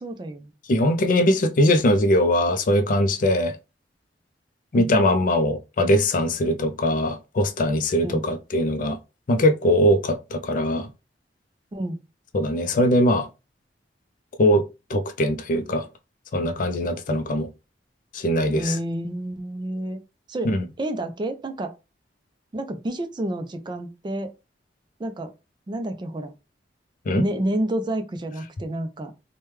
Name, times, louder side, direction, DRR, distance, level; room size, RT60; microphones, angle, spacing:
voice 1, 0.0-0.5 4.7-4.9 8.0-8.3 11.7-12.0 18.6-20.0 20.3-21.7 22.5-24.3 25.0-25.3 25.7-26.3 27.2-29.1, right 1 dB, 25° right, 0.4 m, -29 dB
voice 2, 0.7-3.5 4.7-9.0 9.3-10.9 12.3-13.3 14.4-14.6 14.9-15.9 16.3-17.5 18.1-18.8 20.4-20.6 27.1-27.2, left 1 dB, 50° left, 0.4 m, -21 dB
3.2 x 2.2 x 3.1 m
head